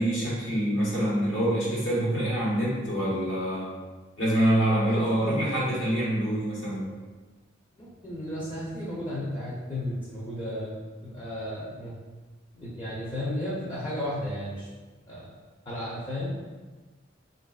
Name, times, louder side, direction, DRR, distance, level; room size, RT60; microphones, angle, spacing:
voice 1, 0.0-3.7 4.2-6.9, right 1 dB, 75° left, -7 dB, 1.3 m, -25 dB
voice 2, 4.8-5.5 7.8-11.9 12.5-14.7 15.1-15.3 15.7-16.3, left 1 dB, 25° left, -8 dB, 0.6 m, -34 dB
4.4 x 2.5 x 2.3 m, 1.3 s
head